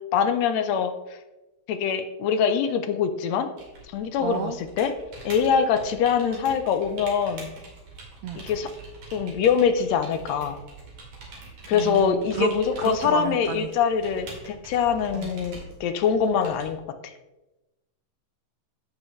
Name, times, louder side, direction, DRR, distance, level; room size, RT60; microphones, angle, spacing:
voice 1, 0.1-0.9 1.7-3.5 3.9-4.9 5.3-7.5 8.4-8.7 9.1-10.6 11.7-16.8 17.0-17.1, left 7 dB, 75° left, 8 dB, 1.8 m, -23 dB
sound 1, 3.6-16.7, right 3 dB, 75° right, 3.8 m, -44 dB
voice 2, 4.2-4.6 8.2-8.5 11.7-12.5 12.8-13.7 15.1-15.3, right 9 dB, 90° right, 7 dB, 1.3 m, -32 dB
15.0 x 6.5 x 3.1 m, 1.0 s
omnidirectional pair, 3.3 m